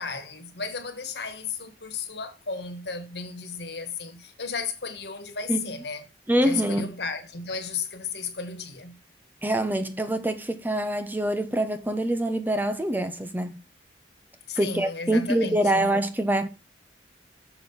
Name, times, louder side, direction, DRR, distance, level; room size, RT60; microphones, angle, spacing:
voice 1, 0.0-6.0 6.4-9.0 14.5-15.9, left 5 dB, 65° left, 1.6 m, -34 dB
voice 2, 6.3-6.9 9.4-13.5 14.6-16.5, right 1 dB, 10° right, 0.7 m, -25 dB
7.0 x 5.7 x 5.6 m
head